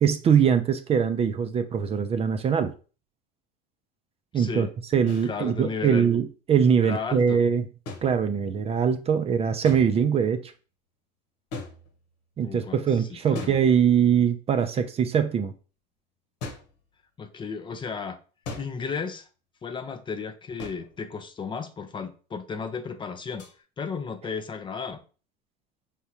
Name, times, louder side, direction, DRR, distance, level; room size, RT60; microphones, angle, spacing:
voice 1, 0.0-2.7 4.3-4.7 4.9-7.6 8.0-10.5 12.4-15.5, right 7 dB, 30° right, 0.5 m, -22 dB
voice 2, 4.3-4.7 5.2-6.1 6.8-7.4 12.4-13.6 17.2-18.2 18.6-19.3 19.6-23.5 23.8-25.0, left 5 dB, 25° left, 0.5 m, -34 dB
sound 1, 5.1-5.3 7.9-8.7 9.6-10.3 11.5-12.3 13.3-14.2 16.4-16.8 18.4-19.0 20.6-21.0 23.4-23.6, left 3 dB, 80° left, 1.2 m, -40 dB
4.7 x 3.5 x 2.8 m
supercardioid pair, 110°, 21 cm